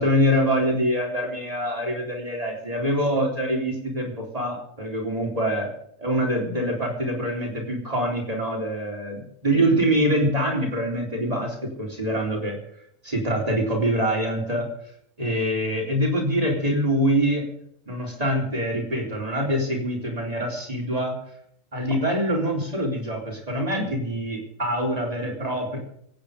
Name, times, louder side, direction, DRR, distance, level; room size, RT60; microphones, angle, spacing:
voice 1, 0.0-5.7 6.0-12.6 13.0-14.7 15.2-17.4 17.9-21.1 21.7-25.8, equal, 25° right, -1 dB, 4.0 m, -25 dB
24.5 x 9.3 x 5.2 m, 0.72 s
omnidirectional pair, 1.4 m